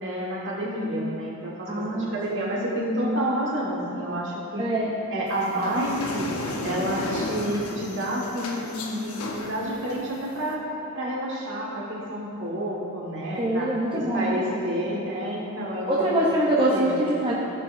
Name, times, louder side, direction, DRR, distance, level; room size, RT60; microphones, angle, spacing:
voice 1, 0.0-4.6 5.1-6.3 6.6-10.7 10.9-13.7 14.1-16.2 16.7-17.1, equal, 55° right, -4 dB, 1.6 m, -29 dB
voice 2, 1.7-2.2 4.6-4.9 13.4-14.4 15.9-17.3, right 1 dB, 25° right, -5 dB, 0.7 m, -24 dB
sound 1, 5.3-10.5, left 2 dB, 85° left, 0.9 m, -34 dB
14.0 x 5.5 x 2.6 m, 2.8 s
head